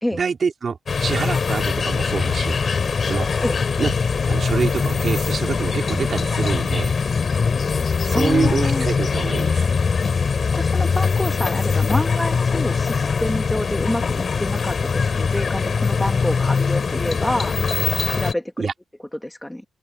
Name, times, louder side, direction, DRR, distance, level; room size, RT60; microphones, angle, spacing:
voice 1, 0.1-2.6 3.0-3.3 3.8-3.9 4.3-6.9 8.0-9.7 18.6-18.7, right 5 dB, 40° right, 3.6 m, -25 dB
sound 1, 0.9-18.3, left 5 dB, 40° left, 3.9 m, -22 dB
voice 2, 8.1-8.9 10.6-17.6 18.1-18.7 19.2-19.6, left 1 dB, 5° left, 1.9 m, -27 dB
open air
cardioid pair, 90°, 0 cm